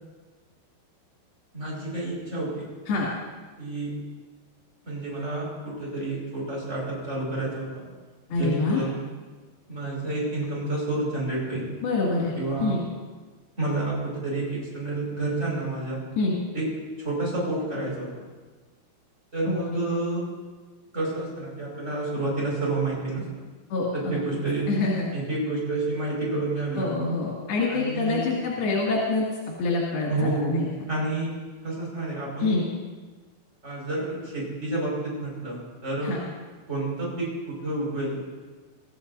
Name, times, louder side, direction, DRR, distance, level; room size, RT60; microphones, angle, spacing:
voice 1, 1.5-2.7 3.6-3.9 4.9-7.9 8.3-9.1 9.7-11.7 12.4-12.8 13.6-16.0 16.5-16.7 17.0-18.2 19.3-20.3 20.9-23.4 23.9-24.7 25.1-27.1 27.7-28.3 30.1-30.6 30.9-31.3 31.6-32.6 33.6-36.1 36.7-38.2, right 2 dB, 15° right, -5 dB, 5.7 m, -29 dB
voice 2, 8.3-8.8 11.8-12.3 12.6-12.8 16.2-16.4 19.5-19.8 23.7-24.2 24.7-25.1 26.8-29.3 29.6-30.7 32.4-32.6 36.0-36.2, left 3 dB, 75° left, -5 dB, 4.3 m, -26 dB
24.5 x 14.5 x 2.7 m, 1.4 s
omnidirectional pair, 4.5 m